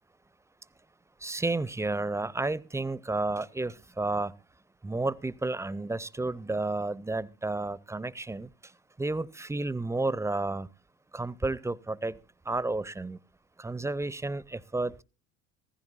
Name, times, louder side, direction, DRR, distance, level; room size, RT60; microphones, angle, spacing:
voice 1, 1.2-4.3 4.8-8.5 9.0-10.7 11.1-12.2 12.5-13.2 13.6-15.0, right 2 dB, 5° right, 0.5 m, -31 dB
15.5 x 15.0 x 2.4 m
hypercardioid pair, 65°, 45 cm